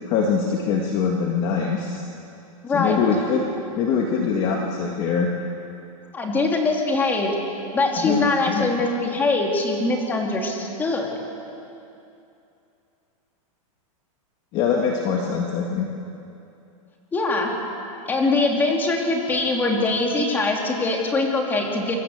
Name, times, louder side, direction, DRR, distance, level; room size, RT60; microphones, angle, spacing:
voice 1, 0.0-2.1 2.7-3.4 3.8-5.3 8.0-8.8 14.5-15.9, left 5 dB, 25° left, 1 dB, 1.8 m, -23 dB
voice 2, 2.6-3.0 6.1-7.3 7.7-11.1 17.1-17.5 18.1-22.0, left 3 dB, 10° left, 1 dB, 2.8 m, -22 dB
27.0 x 23.5 x 8.0 m, 2.7 s
supercardioid pair, 170°, 18 cm